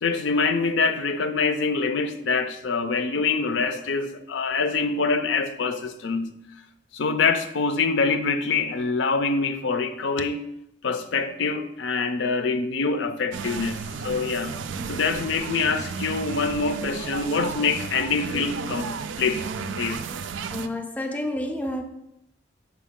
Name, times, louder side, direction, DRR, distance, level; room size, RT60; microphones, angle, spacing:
voice 1, 0.0-6.3 6.9-10.4 10.8-14.5 14.9-19.5 19.8-20.0, left 4 dB, 80° left, 0.5 m, -25 dB
sound 1, 13.3-20.7, right 5 dB, 80° right, 0.4 m, -33 dB
voice 2, 20.5-21.8, left 1 dB, 10° left, 0.4 m, -29 dB
6.0 x 4.6 x 3.6 m
head